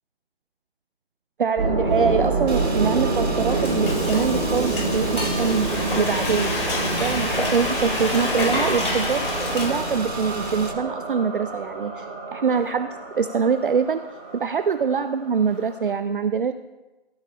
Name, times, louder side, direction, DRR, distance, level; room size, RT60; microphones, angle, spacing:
voice 1, 1.4-6.5 7.0-9.2 9.5-12.9 13.2-14.0 14.3-16.5, right 6 dB, 55° right, 10 dB, 0.5 m, -24 dB
sound 1, 1.6-15.8, right 3 dB, 20° right, 3.8 m, -28 dB
Car / Engine, 2.5-10.7, right 1 dB, 80° right, 2.0 m, -33 dB
Frying (food), 3.2-10.2, left 1 dB, 60° left, 4.3 m, -28 dB
15.5 x 15.0 x 2.2 m, 1.1 s
figure-of-eight pair, 155°, 32 cm